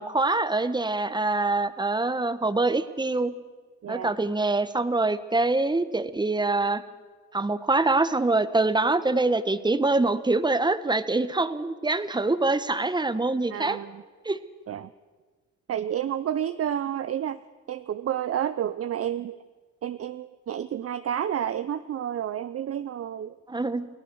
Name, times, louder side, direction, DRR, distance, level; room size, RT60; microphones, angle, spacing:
voice 1, 0.0-3.3 3.9-6.8 7.3-13.8 14.2-14.4 23.5-23.9, right 2 dB, 15° right, 12 dB, 1.3 m, -24 dB
voice 2, 13.5-14.0 14.7-14.9 15.7-17.4 17.7-19.4 19.8-23.4, right 10 dB, 50° right, 12 dB, 0.7 m, -30 dB
29.0 x 18.0 x 6.3 m, 1.4 s
cardioid pair, 100°, 30 cm